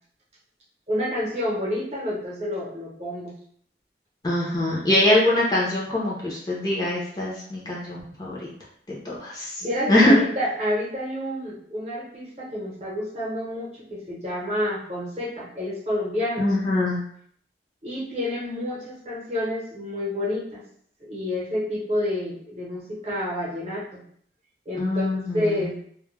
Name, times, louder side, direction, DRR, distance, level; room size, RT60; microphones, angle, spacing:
voice 1, 0.9-3.3 9.6-16.5 17.8-20.6 21.0-24.0 24.7-25.1 25.3-25.8, left 1 dB, 40° right, -6 dB, 0.8 m, -29 dB
voice 2, 4.2-8.5 8.9-9.5 9.9-10.1 16.4-17.0 24.8-25.7, left 1 dB, 25° left, -5 dB, 0.6 m, -23 dB
2.2 x 2.1 x 3.1 m, 0.62 s
head